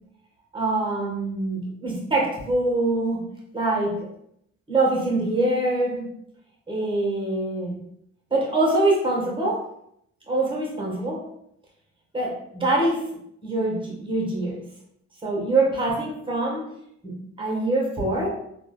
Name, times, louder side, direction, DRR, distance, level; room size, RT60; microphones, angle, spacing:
voice 1, 0.5-3.2 3.5-4.1 4.7-6.1 6.7-7.8 8.3-9.6 10.3-11.2 12.1-13.0 13.4-14.7 15.2-16.7 17.0-18.4, right 2 dB, 15° right, -1 dB, 1.1 m, -24 dB
3.6 x 2.3 x 2.2 m, 0.73 s
cardioid pair, 90°, 30 cm